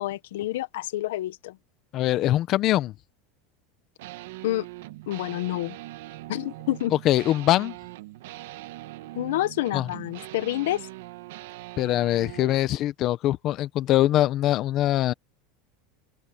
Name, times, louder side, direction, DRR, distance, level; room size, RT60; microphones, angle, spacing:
voice 1, 0.0-1.6 4.4-4.7 5.1-5.8 6.3-6.9 9.1-10.9, left 15 dB, 85° left, 1.0 m, -28 dB
voice 2, 1.9-2.9 7.0-7.7 9.7-9.9 11.8-15.1, left 14 dB, 35° left, 0.8 m, -23 dB
sound 1, 4.0-12.7, right 18 dB, 80° right, 1.3 m, -41 dB
open air
supercardioid pair, 160°, 0 cm